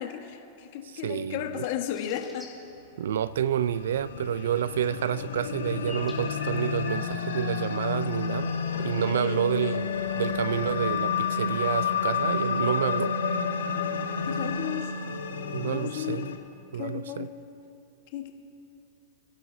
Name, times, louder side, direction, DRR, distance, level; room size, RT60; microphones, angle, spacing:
voice 1, 0.0-2.5 8.9-9.4 14.3-14.9 15.6-16.2 16.7-17.4 18.1-18.3, left 11 dB, 60° left, 1.4 m, -34 dB
voice 2, 1.0-1.7 3.0-13.1 15.5-16.3 16.7-17.3, right 9 dB, 75° right, 0.4 m, -29 dB
sound 1, 1.9-2.5 5.9-6.6 6.8-7.4, left 3 dB, 5° left, 3.4 m, -43 dB
sound 2, 3.3-16.4, left 6 dB, 85° left, 1.4 m, -30 dB
29.5 x 12.0 x 2.8 m
hypercardioid pair, 105°, 0 cm